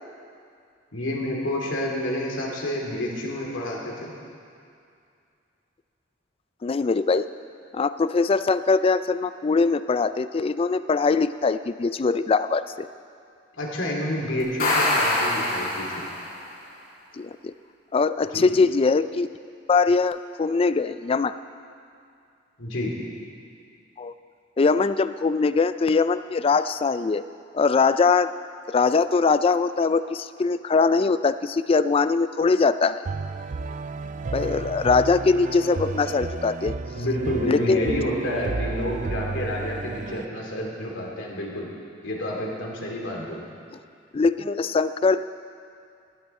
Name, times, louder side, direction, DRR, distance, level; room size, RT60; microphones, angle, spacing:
voice 1, 0.9-4.1 13.6-15.8 18.3-18.4 22.6-22.9 37.0-41.7 42.0-43.5, left 1 dB, 80° left, -2 dB, 2.6 m, -29 dB
voice 2, 6.6-7.3 7.7-12.9 17.1-17.5 17.9-19.3 19.7-21.3 24.0-24.1 24.6-27.2 27.5-28.3 28.7-33.0 34.3-36.7 37.5-37.9 44.1-45.2, left 4 dB, 30° left, 13 dB, 0.3 m, -22 dB
sound 1, 14.4-16.4, left 1 dB, 50° left, 3.8 m, -24 dB
sound 2, 33.0-40.2, right 3 dB, 40° right, 0.4 m, -32 dB
17.0 x 12.0 x 4.3 m, 2.4 s
head